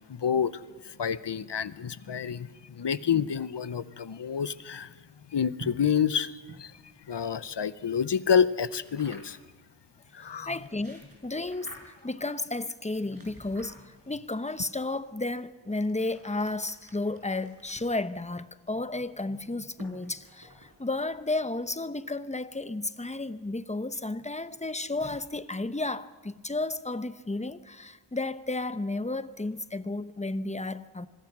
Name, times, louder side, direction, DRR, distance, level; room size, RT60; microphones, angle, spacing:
voice 1, 0.1-4.9 5.3-6.3 6.6-6.7 7.1-9.4 10.1-10.6, left 7 dB, 65° left, 15 dB, 0.9 m, -28 dB
Book Pack, 5.6-7.7 8.8-9.5 10.4-12.1 12.9-14.2 15.0-21.4, right 1 dB, 50° right, 5.6 m, -51 dB
voice 2, 10.4-31.1, left 2 dB, 15° left, 12 dB, 0.9 m, -33 dB
25.5 x 22.0 x 6.1 m, 1.4 s
wide cardioid pair, 80°, 46 cm